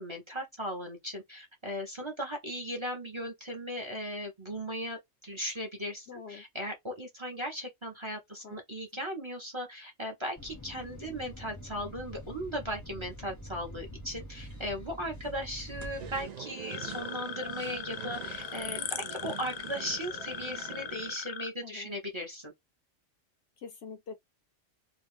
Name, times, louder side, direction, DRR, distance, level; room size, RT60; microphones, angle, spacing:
voice 1, 0.0-22.5, equal, 25° right, 0.8 m, -37 dB
voice 2, 6.1-6.4 8.4-8.6 21.6-21.9 23.6-24.1, left 5 dB, 60° left, 0.8 m, -45 dB
sound 1, 10.4-16.2, equal, 20° left, 0.5 m, -45 dB
sound 2, 16.0-21.1, right 7 dB, 60° right, 0.4 m, -44 dB
sound 3, 16.7-21.5, left 9 dB, 90° left, 1.0 m, -39 dB
2.7 x 2.3 x 3.4 m
omnidirectional pair, 1.3 m